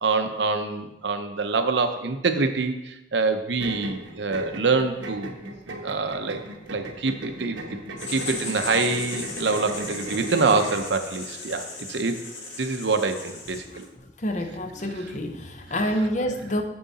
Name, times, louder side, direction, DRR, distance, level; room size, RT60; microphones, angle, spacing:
voice 1, 0.0-5.3 5.8-6.4 6.7-7.6 8.1-12.2 12.6-13.9, right 4 dB, 70° right, 7 dB, 0.7 m, -25 dB
sound 1, 3.6-10.9, right 1 dB, 85° right, 1.0 m, -37 dB
Writing, 8.0-13.9, left 3 dB, 85° left, 2.0 m, -37 dB
voice 2, 14.2-16.6, equal, 40° left, 6 dB, 0.8 m, -27 dB
7.9 x 7.6 x 4.1 m, 0.92 s
head